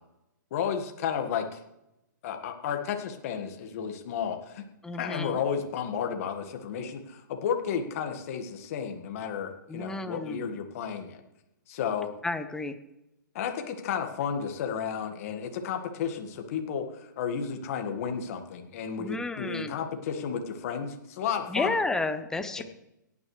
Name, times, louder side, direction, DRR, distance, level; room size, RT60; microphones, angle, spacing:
voice 1, 0.5-1.6 2.2-4.6 4.9-11.2 11.7-12.1 13.4-21.7 22.6-22.7, left 7 dB, 45° left, 5 dB, 1.8 m, -32 dB
voice 2, 4.8-5.4 9.7-10.5 12.2-12.8 19.0-19.8 21.5-22.6, left 2 dB, 5° left, 9 dB, 0.8 m, -31 dB
17.5 x 9.9 x 3.3 m, 0.87 s
hypercardioid pair, 135°, 10 cm